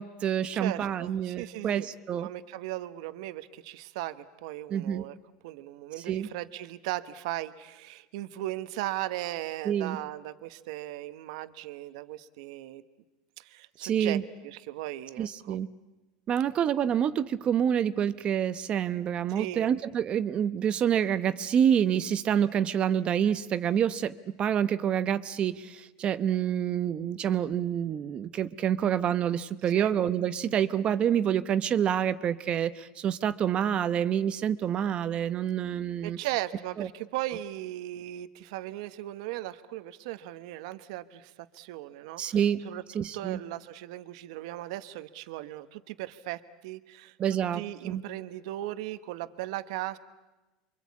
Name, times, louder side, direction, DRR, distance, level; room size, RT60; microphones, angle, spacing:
voice 1, 0.0-2.3 4.7-5.0 6.1-6.3 9.6-10.0 13.8-14.2 15.2-15.7 16.3-36.2 36.8-36.9 42.2-42.6 42.9-43.4 47.2-48.0, right 9 dB, 30° right, 13 dB, 0.9 m, -27 dB
voice 2, 0.5-1.9 2.2-5.2 5.4-12.8 13.4-15.6 19.3-19.7 29.7-29.9 36.0-42.4 42.6-42.8 43.1-47.1 47.5-50.0, right 15 dB, 75° right, 12 dB, 1.2 m, -37 dB
28.5 x 24.5 x 8.5 m, 1.1 s
supercardioid pair, 140°, 3 cm